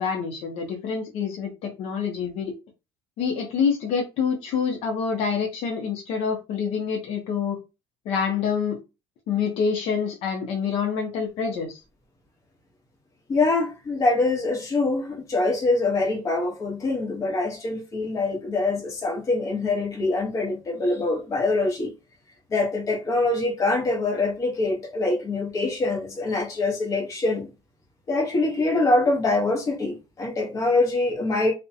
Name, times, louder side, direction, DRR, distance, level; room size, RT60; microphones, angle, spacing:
voice 1, 0.0-2.5 3.2-7.6 8.1-8.8 9.3-11.8, left 6 dB, 60° left, 0.6 m, -26 dB
voice 2, 13.3-21.9 22.5-27.5 28.1-31.5, left 2 dB, 30° left, 0.9 m, -24 dB
2.4 x 2.1 x 2.6 m
cardioid pair, 145°, 11 cm